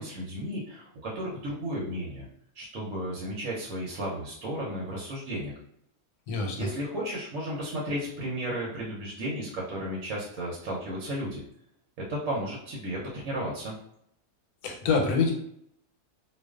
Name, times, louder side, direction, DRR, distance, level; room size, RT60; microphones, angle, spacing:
voice 1, 0.0-2.2 2.5-5.5 6.6-11.4 12.1-13.7, equal, 70° right, -4 dB, 1.0 m, -34 dB
voice 2, 6.3-6.7 14.6-15.3, left 4 dB, 90° left, 2 dB, 1.1 m, -25 dB
2.4 x 2.2 x 2.3 m, 0.74 s
omnidirectional pair, 1.5 m